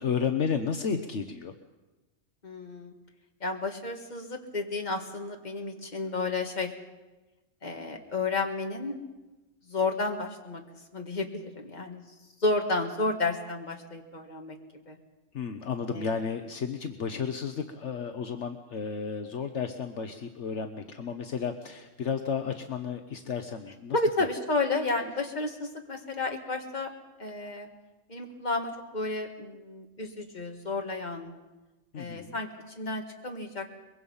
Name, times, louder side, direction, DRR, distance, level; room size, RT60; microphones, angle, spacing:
voice 1, 0.0-1.5 15.3-24.0 31.9-32.4, left 6 dB, 65° left, 6 dB, 1.3 m, -32 dB
voice 2, 2.4-2.9 3.4-6.7 7.6-9.0 9.7-10.6 10.9-12.0 12.4-14.6 14.9-15.0 15.9-16.1 23.9-26.9 27.2-27.7 28.1-31.3 32.0-33.7, left 3 dB, 35° left, 3 dB, 2.0 m, -31 dB
23.5 x 22.0 x 5.6 m, 1.1 s
omnidirectional pair, 1.3 m